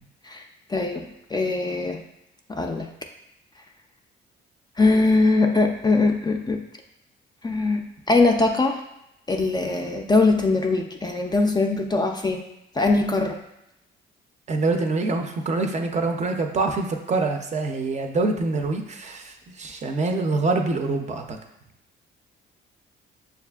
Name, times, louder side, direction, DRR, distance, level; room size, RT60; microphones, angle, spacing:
voice 1, 0.7-2.0 2.5-2.9 4.8-6.6 7.4-8.8 9.3-12.4 12.7-13.4, left 3 dB, 20° left, 3 dB, 0.3 m, -21 dB
voice 2, 14.5-21.4, right 3 dB, 35° right, 4 dB, 0.5 m, -25 dB
6.4 x 2.4 x 2.3 m, 0.83 s
cardioid pair, 90°, 20 cm